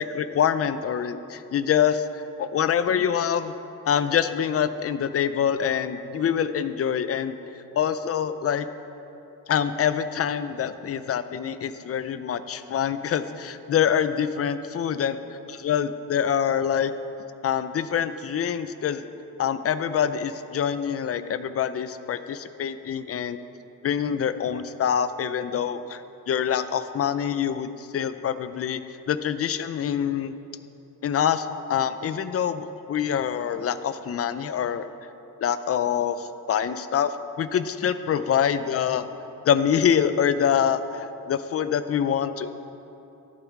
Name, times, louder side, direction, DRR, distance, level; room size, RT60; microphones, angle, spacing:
voice 1, 0.0-2.0 2.4-3.5 3.9-7.4 7.8-8.7 9.5-15.2 15.5-16.9 17.4-19.0 19.4-23.4 23.8-26.0 26.3-28.8 29.1-30.3 31.0-34.9 35.4-37.1 37.4-39.1 39.4-42.5, left 8 dB, 40° left, 12 dB, 0.5 m, -25 dB
13.0 x 11.0 x 4.6 m, 2.9 s
cardioid pair, 125°, 35 cm